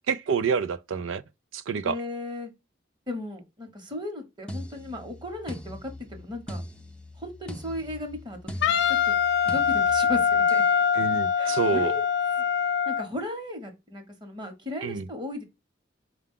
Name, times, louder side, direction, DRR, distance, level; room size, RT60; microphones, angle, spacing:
voice 1, 0.1-1.2 1.5-2.0 10.9-11.9 14.8-15.1, right 6 dB, 85° right, 0.4 m, -27 dB
voice 2, 1.8-2.5 3.1-6.6 7.2-8.4 8.6-9.1 9.4-10.6 11.4-12.0 12.4-15.4, left 2 dB, 25° right, 1.0 m, -36 dB
sound 1, 4.5-10.8 11.5-11.8, equal, 5° left, 0.5 m, -41 dB
Wind instrument woodwind instrument, 8.6-13.1, left 7 dB, 65° left, 0.4 m, -23 dB
4.6 x 2.3 x 3.6 m
head